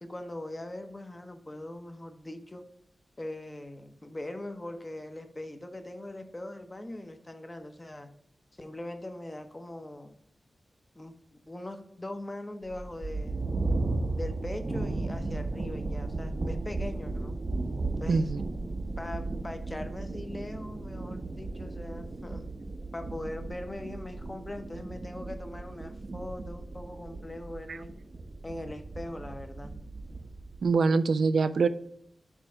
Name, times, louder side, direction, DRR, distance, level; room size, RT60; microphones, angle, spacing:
voice 1, 0.0-2.7 3.2-8.1 8.5-10.1 10.9-11.2 11.5-13.6 14.2-17.4 18.0-18.3 19.0-22.5 22.9-27.9 28.4-29.7, left 1 dB, 20° left, 7 dB, 0.8 m, -41 dB
sound 1, 12.6-30.7, right 2 dB, 40° right, 0.8 m, -35 dB
voice 2, 18.1-18.4 27.7-27.8 30.6-31.7, right 4 dB, 80° right, 13 dB, 0.4 m, -24 dB
7.4 x 3.3 x 4.9 m, 0.70 s
wide cardioid pair, 110°, 0 cm